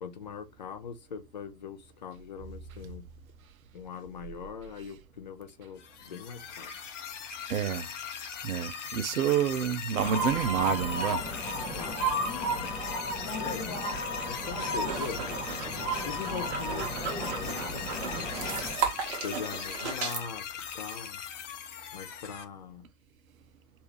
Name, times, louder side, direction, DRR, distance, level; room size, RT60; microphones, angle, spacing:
voice 1, 0.0-3.1 3.7-6.7 11.7-12.0 12.6-12.8 13.4-14.0 14.3-18.6 19.2-20.4 20.7-21.2 21.9-22.9, left 6 dB, 30° left, 0.4 m, -41 dB
sound 1, 5.8-22.4, left 7 dB, 50° left, 0.8 m, -40 dB
voice 2, 7.5-7.9 8.4-11.2, right 9 dB, 55° right, 0.7 m, -28 dB
sound 2, 9.9-18.7, right 1 dB, 10° left, 0.9 m, -33 dB
sound 3, 14.5-20.2, right 7 dB, 40° right, 1.3 m, -36 dB
3.4 x 2.6 x 3.0 m
figure-of-eight pair, 105°, 49 cm